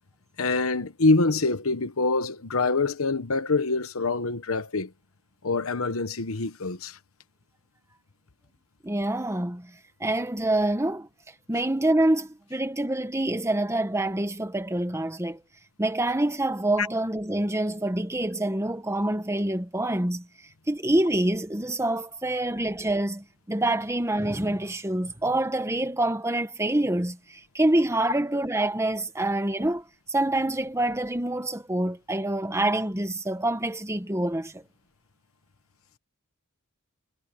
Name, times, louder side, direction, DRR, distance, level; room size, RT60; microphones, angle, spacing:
voice 1, 0.4-4.9 5.4-7.0 16.8-16.9, left 3 dB, 70° left, 1.2 m, -25 dB
voice 2, 8.8-9.7 10.0-11.1 11.5-15.4 15.8-20.3 20.7-34.6, right 1 dB, 15° right, 1.4 m, -26 dB
head